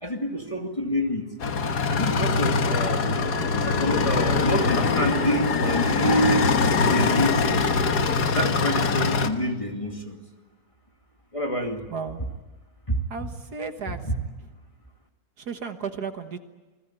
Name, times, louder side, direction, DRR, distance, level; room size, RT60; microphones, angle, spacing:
voice 1, 0.0-1.3 1.9-3.2 3.6-6.5 6.8-7.7 8.3-10.2 11.3-11.9 12.9-13.0, equal, 20° left, 2 dB, 2.5 m, -27 dB
sound 1, 1.4-9.3, left 4 dB, 70° left, 1.9 m, -23 dB
voice 2, 11.9-12.2 13.1-14.0 15.4-16.4, right 5 dB, 65° right, 7 dB, 1.9 m, -34 dB
28.5 x 21.0 x 9.0 m, 1.2 s
omnidirectional pair, 1.8 m